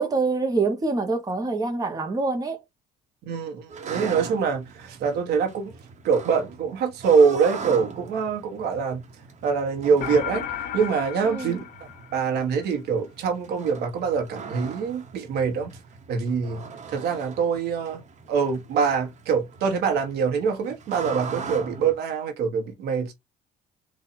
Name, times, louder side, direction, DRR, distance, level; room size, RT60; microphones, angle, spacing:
voice 1, 0.0-2.6 11.2-11.6, right 3 dB, 20° right, 1.2 m, -25 dB
voice 2, 3.2-5.7 6.0-9.0 9.4-10.4 10.7-11.6 12.1-15.8 16.1-16.6 16.9-18.0 18.3-23.1, right 6 dB, 75° right, 1.4 m, -24 dB
sound 1, 3.7-21.9, right 5 dB, 45° right, 1.4 m, -40 dB
sound 2, 10.0-12.6, left 9 dB, 60° left, 0.7 m, -34 dB
4.3 x 2.7 x 4.2 m
cardioid pair, 110°, 17 cm